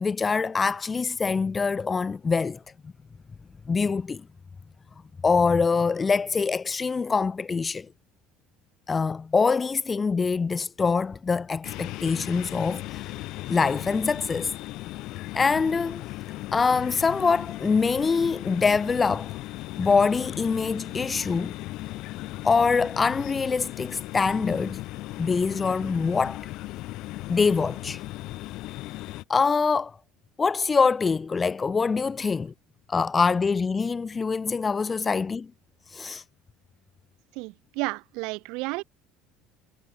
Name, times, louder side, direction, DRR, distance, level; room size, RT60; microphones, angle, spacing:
voice 1, 0.0-2.6 3.7-4.2 5.2-7.9 8.9-13.1 13.5-14.5 15.3-16.0 16.5-19.4 19.8-21.5 22.4-24.8 25.2-26.5 27.3-28.0 29.3-30.0 30.4-32.5 32.9-35.5 35.9-36.2, left 5 dB, 15° left, 0.6 m, -24 dB
sound 1, 11.6-29.2, left 18 dB, 50° left, 4.0 m, -37 dB
voice 2, 37.4-38.8, right 26 dB, 65° right, 1.7 m, -32 dB
cardioid pair, 160°, 0 cm